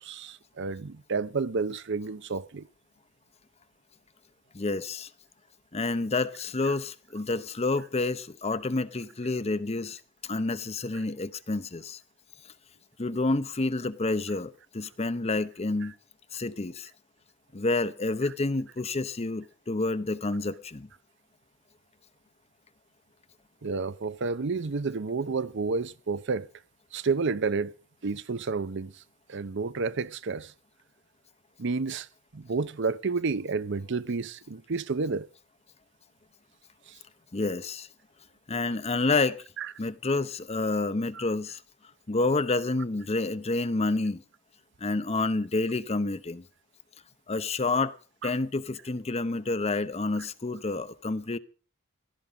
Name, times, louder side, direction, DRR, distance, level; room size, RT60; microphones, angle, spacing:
voice 1, 0.0-2.7 6.7-6.8 15.8-15.9 23.6-26.5 26.9-27.7 28.0-29.0 29.3-30.5 31.6-32.1 32.3-35.3 36.9-37.0 39.6-39.7 41.1-41.2 48.2-48.3, right 4 dB, 60° right, 0.7 m, -30 dB
voice 2, 4.5-5.1 5.7-12.0 13.0-15.9 16.3-16.9 17.5-20.9 37.3-37.9 38.5-39.4 39.8-41.6 42.1-44.2 44.8-46.4 47.3-47.9 48.2-51.4, left 3 dB, 30° left, 0.8 m, -29 dB
17.0 x 12.5 x 5.1 m
head